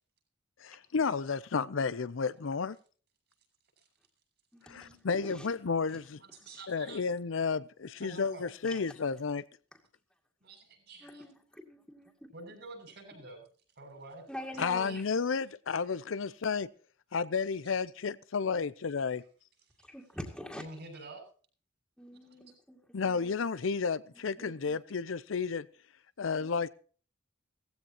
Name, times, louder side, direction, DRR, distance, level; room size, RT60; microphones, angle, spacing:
voice 1, 0.6-2.8 4.7-6.2 6.7-9.4 14.6-16.7 17.1-19.2 22.9-25.7 26.2-26.7, left 5 dB, 85° left, 0.6 m, -32 dB
voice 2, 4.5-5.5 5.9-6.0 6.4-6.6 8.7-8.8 9.7-9.8 11.0-12.3 14.3-15.0 19.8-20.7 22.0-22.8 23.0-23.3 24.4-24.5, equal, 5° left, 2.3 m, -45 dB
voice 3, 6.2-7.0 8.0-8.4 8.7-8.8 10.4-11.2 12.3-13.4 13.8-14.2 14.5-15.0 20.6-21.2 22.3-22.4, right 2 dB, 60° right, 6.9 m, -48 dB
17.5 x 15.5 x 2.9 m
head